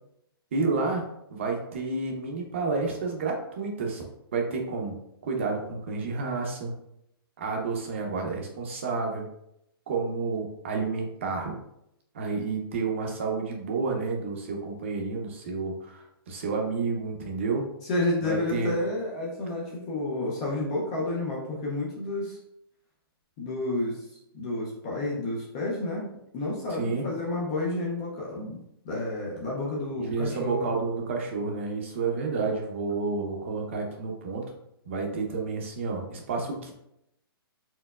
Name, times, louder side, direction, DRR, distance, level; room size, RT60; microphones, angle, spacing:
voice 1, 0.5-1.0 1.3-4.0 4.3-5.0 5.2-6.7 7.4-9.3 9.9-11.5 12.1-17.7 18.2-18.7 26.8-27.1 30.0-34.5 34.9-36.7, right 4 dB, 30° right, 1 dB, 0.7 m, -30 dB
voice 2, 17.8-22.4 23.4-24.1 24.3-26.1 26.3-30.7, left 2 dB, 15° left, -4 dB, 0.4 m, -30 dB
4.4 x 3.9 x 2.3 m, 0.79 s
hypercardioid pair, 180°, 13 cm